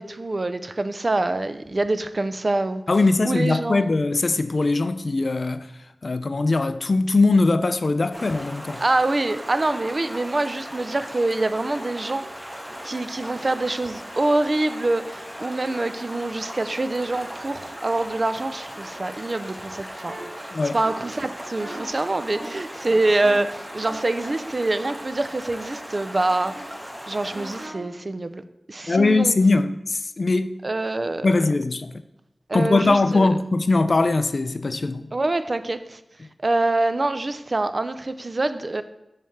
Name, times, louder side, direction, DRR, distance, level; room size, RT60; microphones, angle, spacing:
voice 1, 0.0-2.8 3.2-3.9 8.8-12.2 12.8-26.5 27.1-28.4 28.7-29.3 30.6-31.3 32.5-33.3 35.1-36.0 36.4-38.8, right 2 dB, 45° right, 0.4 m, -25 dB
voice 2, 2.9-5.7 6.0-8.8 20.5-20.8 28.9-30.6 31.2-31.9 32.5-35.1, left 3 dB, 60° left, 0.4 m, -21 dB
Stream, 8.1-27.7, equal, 10° right, 1.4 m, -38 dB
sound 1, 20.1-20.2 20.8-21.0 21.6-21.8 22.3-22.5 22.8-23.3 23.8-26.1 27.3-27.8, right 2 dB, 80° right, 1.6 m, -40 dB
7.0 x 3.2 x 5.7 m
wide cardioid pair, 55°, 0 cm